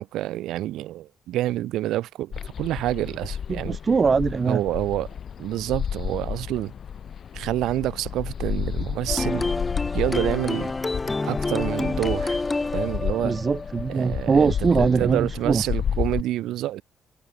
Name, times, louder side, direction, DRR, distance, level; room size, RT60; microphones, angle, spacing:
voice 1, 0.1-3.8 4.4-5.1 5.4-6.7 7.3-9.5 9.9-10.7 11.2-12.4 12.7-13.4 13.9-16.8, right 14 dB, 85° right, 1.0 m, -28 dB
sound 1, 2.3-16.2, left 8 dB, 55° left, 3.8 m, -32 dB
voice 2, 3.5-4.6 13.2-15.6, right 5 dB, 35° right, 0.7 m, -22 dB
sound 2, 9.1-14.6, left 3 dB, 20° left, 3.7 m, -28 dB
cardioid pair, 90°, 0 cm